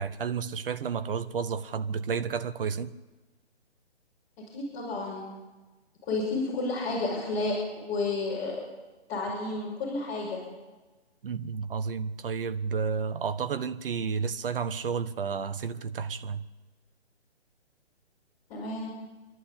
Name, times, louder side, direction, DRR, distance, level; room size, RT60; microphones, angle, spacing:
voice 1, 0.0-2.9 11.2-16.4, right 6 dB, 55° right, 1.3 m, -31 dB
voice 2, 4.4-5.3 6.1-8.6 9.1-10.4 18.5-18.9, left 3 dB, 20° left, 5.6 m, -31 dB
27.0 x 11.5 x 8.6 m
hypercardioid pair, 150°, 34 cm